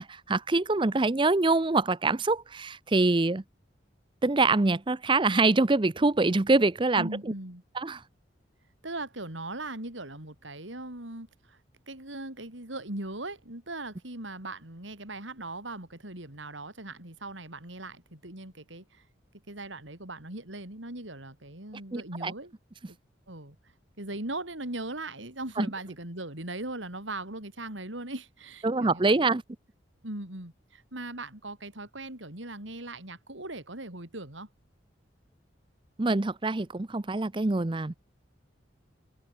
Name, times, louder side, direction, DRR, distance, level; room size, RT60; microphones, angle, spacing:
voice 1, 0.0-3.4 4.2-7.1 7.8-8.0 21.9-22.3 25.6-25.7 28.6-29.4 36.0-37.9, right 3 dB, 25° right, 0.6 m, -25 dB
voice 2, 7.0-7.6 8.8-11.6 11.9-19.0 19.5-22.5 22.9-23.0 23.3-23.6 24.0-29.3 30.0-34.5, right 2 dB, 85° right, 5.7 m, -39 dB
head